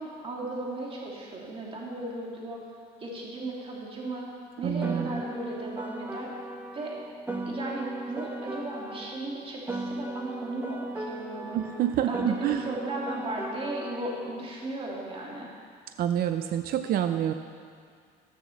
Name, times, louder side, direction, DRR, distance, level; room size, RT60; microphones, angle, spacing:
voice 1, 0.0-2.6 3.0-4.3 4.6-6.3 6.7-7.0 7.4-11.6 12.1-15.5, right 2 dB, 35° right, -3 dB, 2.7 m, -36 dB
voice 2, 4.6-5.2 11.5-12.7 16.0-17.3, right 10 dB, 60° right, 8 dB, 0.6 m, -27 dB
Piano, 4.8-9.3 9.7-14.3, right 2 dB, 10° right, 1.4 m, -36 dB
14.5 x 7.5 x 7.2 m, 2.2 s
cardioid pair, 110°, 17 cm